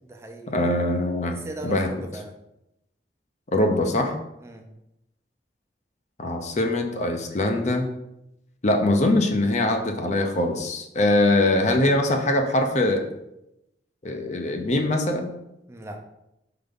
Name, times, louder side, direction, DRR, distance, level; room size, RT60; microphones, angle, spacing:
voice 1, 0.0-0.5 1.3-2.3 4.4-4.7 15.7-16.0, right 1 dB, 15° right, 3 dB, 0.6 m, -38 dB
voice 2, 0.5-1.4 1.6-1.9 3.5-4.2 6.2-7.9 8.6-13.0 14.0-15.3, left 1 dB, 40° left, 4 dB, 0.7 m, -22 dB
4.6 x 3.9 x 5.2 m, 0.87 s
head